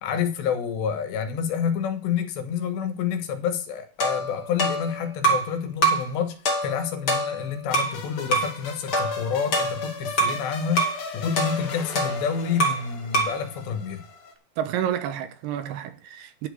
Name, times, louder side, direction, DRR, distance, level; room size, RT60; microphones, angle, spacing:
voice 1, 0.0-10.8 11.1-14.0, left 7 dB, 85° left, 3.5 m, -28 dB
sound 1, 4.0-5.5 5.8-6.1 6.5-8.0 8.3-8.6 8.9-10.4 10.8-11.0 11.4-12.9 13.1-13.4, right 1 dB, 35° left, 1.9 m, -25 dB
sound 2, 7.7-14.3, left 4 dB, 50° left, 2.3 m, -38 dB
voice 2, 14.6-16.5, right 10 dB, 75° right, 2.8 m, -29 dB
11.0 x 5.3 x 8.0 m
omnidirectional pair, 4.9 m